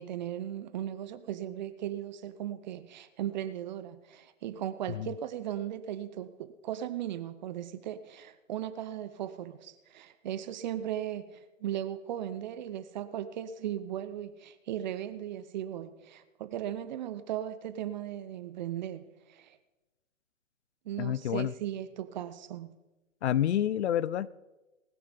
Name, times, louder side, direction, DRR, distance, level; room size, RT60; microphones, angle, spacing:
voice 1, 0.0-19.6 20.9-22.7, right 11 dB, 35° right, 12 dB, 0.7 m, -37 dB
voice 2, 21.0-21.5 23.2-24.3, left 11 dB, 60° left, 20 dB, 0.6 m, -28 dB
20.0 x 9.6 x 5.2 m, 1.1 s
hypercardioid pair, 130°, 39 cm